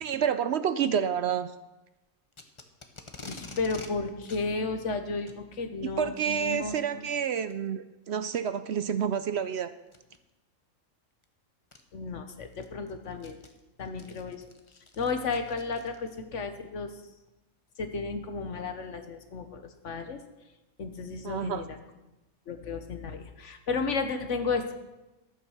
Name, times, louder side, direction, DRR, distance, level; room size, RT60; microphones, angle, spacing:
voice 1, 0.0-1.5 6.0-9.7 21.2-21.6, right 8 dB, 65° right, 12 dB, 0.8 m, -29 dB
Packing tape duct tape, 2.3-3.9 4.3-4.4 5.1-5.4 6.6-6.8 7.5-7.6 8.2-8.3 9.9-10.2 11.2-11.3 11.7-11.8 12.3-16.2, left 3 dB, 25° left, 1.0 m, -47 dB
voice 2, 3.3-7.0 11.9-13.4 13.8-14.4 15.0-16.9 17.8-20.2 20.8-21.8 22.5-24.7, left 4 dB, 65° left, 7 dB, 1.5 m, -33 dB
12.5 x 8.8 x 6.5 m, 1.0 s
omnidirectional pair, 1.4 m